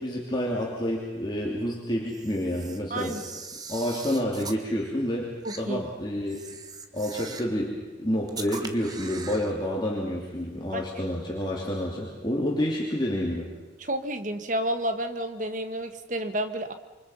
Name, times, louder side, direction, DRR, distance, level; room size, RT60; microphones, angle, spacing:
voice 1, 0.0-3.2 3.7-6.4 6.9-13.5, equal, 25° left, -2 dB, 2.9 m, -29 dB
Camera, 2.1-4.6 5.4-5.6 6.3-7.6 8.3-9.5, right 4 dB, 20° right, 1.3 m, -41 dB
voice 2, 2.9-3.2 5.4-5.8 10.7-10.8 13.8-16.7, right 1 dB, 45° right, 8 dB, 1.7 m, -30 dB
28.0 x 24.5 x 5.7 m, 1.3 s
head